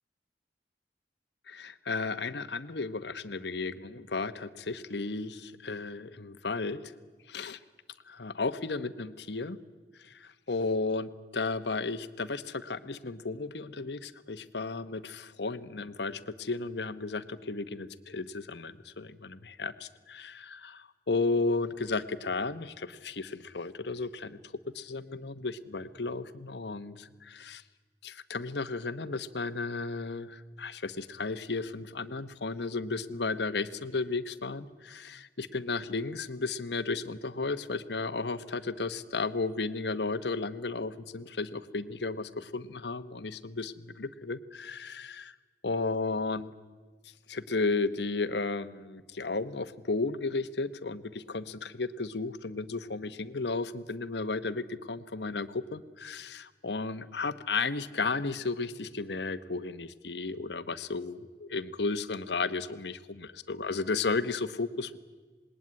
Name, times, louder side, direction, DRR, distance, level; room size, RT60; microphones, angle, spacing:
voice 1, 1.5-6.8 7.3-7.6 8.1-9.6 10.0-24.4 24.7-27.6 28.0-45.3 45.6-46.5 47.3-65.0, left 3 dB, 75° left, 12 dB, 1.1 m, -34 dB
26.5 x 20.0 x 9.7 m, 1.4 s
head